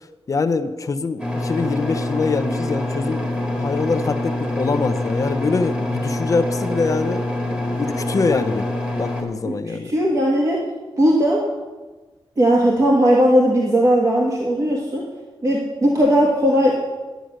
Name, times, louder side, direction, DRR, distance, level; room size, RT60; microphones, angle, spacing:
voice 1, 0.3-8.7 9.0-9.9, left 4 dB, 35° left, 11 dB, 0.5 m, -24 dB
sound 1, 1.2-9.2, left 1 dB, 10° right, 1.8 m, -25 dB
voice 2, 9.4-10.6 11.0-11.4 12.4-15.0 15.4-16.8, equal, 35° right, -2 dB, 1.5 m, -17 dB
10.5 x 9.1 x 6.3 m, 1.2 s
wide cardioid pair, 175°, 10 cm